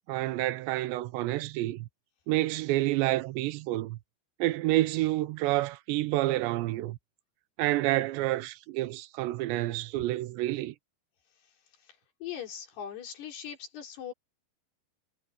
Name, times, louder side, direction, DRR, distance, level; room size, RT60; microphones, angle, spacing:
voice 1, 0.1-1.9 2.3-4.0 4.4-7.0 7.6-10.7, right 17 dB, 90° right, 3.1 m, -29 dB
voice 2, 12.2-14.1, left 9 dB, 70° left, 5.9 m, -40 dB
omnidirectional pair, 5.0 m